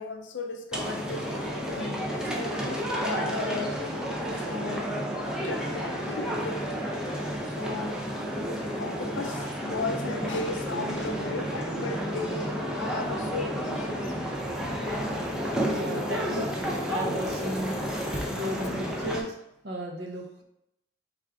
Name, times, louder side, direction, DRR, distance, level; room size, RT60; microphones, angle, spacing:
voice 1, 0.0-3.9 4.3-4.9 5.4-7.0 7.4-8.1 8.8-14.1 15.1-15.5, left 3 dB, 75° left, 5 dB, 0.5 m, -36 dB
sound 1, 0.7-19.2, equal, 5° right, 0.4 m, -31 dB
voice 2, 15.7-17.8 18.3-19.3 19.6-20.4, equal, 60° right, 1 dB, 0.7 m, -34 dB
3.5 x 2.5 x 4.4 m, 0.82 s
head